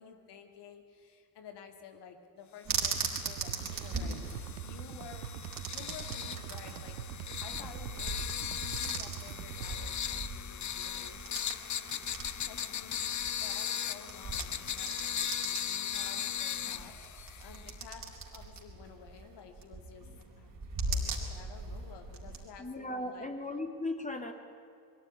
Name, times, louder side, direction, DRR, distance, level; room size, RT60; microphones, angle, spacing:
voice 1, 0.0-4.2 4.6-5.4 5.7-11.6 12.5-20.1 20.3-23.3, left 7 dB, 60° left, 5 dB, 2.3 m, -52 dB
sound 1, 2.6-22.4, right 3 dB, 45° right, 4.7 m, -40 dB
sound 2, 2.7-9.7, right 11 dB, 85° right, 0.8 m, -43 dB
sound 3, 2.8-17.7, left 9 dB, 40° left, 0.9 m, -38 dB
voice 2, 22.6-24.3, left 2 dB, 15° left, 4 dB, 2.8 m, -37 dB
22.0 x 15.0 x 9.9 m, 2.4 s
hypercardioid pair, 45°, 45 cm